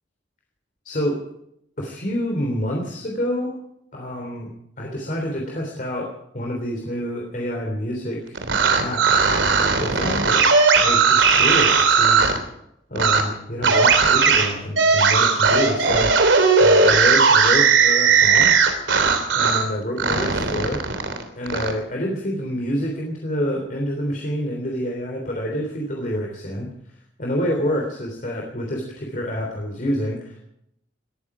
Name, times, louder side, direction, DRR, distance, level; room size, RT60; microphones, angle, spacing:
voice 1, 0.8-1.2 1.8-3.5 3.9-4.5 4.8-8.4 8.8-9.3 9.8-12.2 12.9-16.1 16.6-18.5 19.3-20.8 21.4-26.7 27.2-30.4, equal, 45° left, 0 dB, 3.4 m, -27 dB
sound 1, 8.3-12.4 12.9-13.2 13.6-19.7 20.0-21.7, right 5 dB, 85° right, 3.2 m, -17 dB
20.0 x 14.5 x 5.0 m, 0.78 s
head